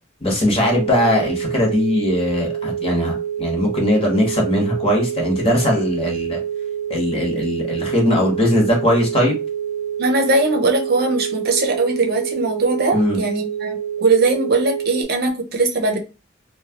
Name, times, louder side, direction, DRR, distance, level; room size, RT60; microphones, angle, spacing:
voice 1, 0.2-6.4 6.9-9.4 12.9-13.2, left 1 dB, 30° left, 0 dB, 1.2 m, -19 dB
sound 1, 0.6-15.0, right 9 dB, 75° left, 0.5 m, -27 dB
voice 2, 10.0-16.0, right 3 dB, 50° right, 2 dB, 0.7 m, -20 dB
3.0 x 2.3 x 2.8 m, 0.31 s
head